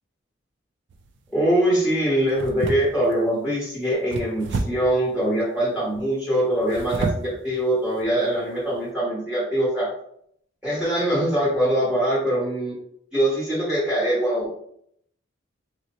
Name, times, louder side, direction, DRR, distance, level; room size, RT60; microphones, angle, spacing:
sound 1, 0.9-1.3 2.3-3.2 4.1-5.0 6.5-7.4 7.9-8.0 8.6-8.7, right 3 dB, 65° right, 0.4 m, -30 dB
voice 1, 1.3-9.9 10.6-12.7 13.1-14.6, right 1 dB, 5° right, -7 dB, 0.8 m, -23 dB
3.8 x 2.1 x 2.9 m, 0.69 s
head